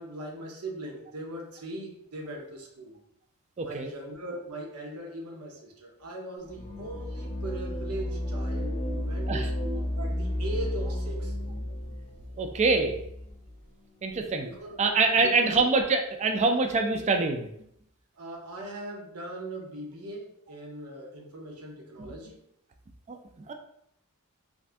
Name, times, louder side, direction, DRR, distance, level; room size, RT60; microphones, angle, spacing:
voice 1, 0.0-3.0 3.6-11.3 14.4-14.9 15.2-15.5 18.2-22.4, right 1 dB, 85° right, 0 dB, 0.8 m, -39 dB
voice 2, 3.6-3.9 9.3-9.5 12.4-13.0 14.0-14.5 14.8-17.5 23.1-23.2 23.5-23.6, right 3 dB, 30° right, 5 dB, 0.3 m, -25 dB
sound 1, 6.4-13.6, left 1 dB, 25° left, 0.6 m, -33 dB
2.5 x 2.5 x 3.3 m, 0.74 s
head